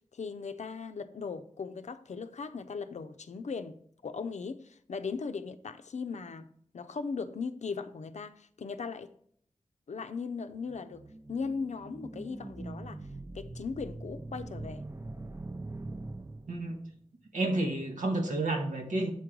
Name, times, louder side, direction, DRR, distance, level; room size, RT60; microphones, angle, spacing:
voice 1, 0.1-3.8 4.0-6.5 6.7-9.1 9.9-11.0 11.3-13.0 13.3-14.8, left 5 dB, 65° left, 0.5 m, -38 dB
sound 1, 10.5-16.9, right 2 dB, 20° right, 0.6 m, -43 dB
voice 2, 16.5-16.8 17.3-19.1, right 2 dB, 85° right, 1.2 m, -30 dB
7.2 x 3.8 x 4.6 m
cardioid pair, 45°, 13 cm